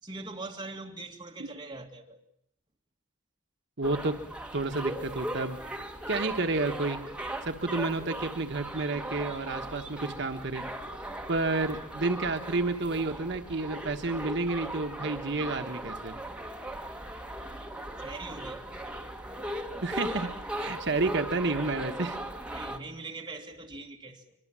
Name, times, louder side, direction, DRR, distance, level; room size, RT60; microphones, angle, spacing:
voice 1, 0.0-2.2 18.0-18.6 22.5-24.4, right 3 dB, 20° right, 2.4 m, -42 dB
sound 1, 3.8-22.8, right 1 dB, 5° right, 1.7 m, -38 dB
voice 2, 3.8-4.1 4.5-5.6 6.1-7.0 7.4-10.6 11.3-16.1 19.8-20.3 20.6-22.2, right 3 dB, 55° right, 1.2 m, -30 dB
23.5 x 23.5 x 7.5 m
head